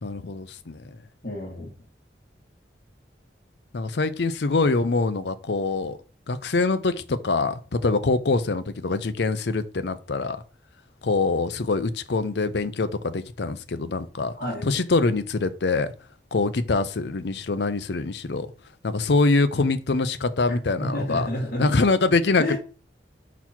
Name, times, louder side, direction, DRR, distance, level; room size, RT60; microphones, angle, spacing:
voice 1, 0.0-0.8 3.7-6.0 6.3-10.4 11.0-14.3 14.6-15.9 16.3-18.5 18.8-21.3 21.6-22.6, left 3 dB, 70° left, 0.6 m, -24 dB
voice 2, 1.2-1.7 14.4-14.6 20.5-21.7 22.4-22.6, left 1 dB, 50° left, 2.0 m, -29 dB
5.7 x 4.1 x 4.4 m
head